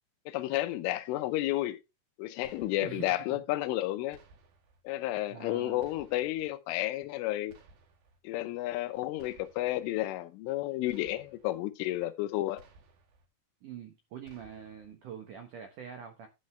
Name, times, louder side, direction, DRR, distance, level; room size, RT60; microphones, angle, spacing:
voice 1, 0.3-1.8 2.2-4.2 4.8-7.5 8.2-12.6, left 16 dB, 80° left, 3.2 m, -32 dB
sound 1, 2.4-3.1 4.1-4.8 5.8-6.5 7.5-8.2 9.2-9.9 10.9-11.6 12.6-13.3 14.2-14.9, right 3 dB, 60° right, 2.8 m, -59 dB
voice 2, 2.8-3.1 5.3-5.8 13.6-16.3, right 8 dB, 85° right, 1.8 m, -44 dB
12.0 x 7.9 x 3.2 m
omnidirectional pair, 5.8 m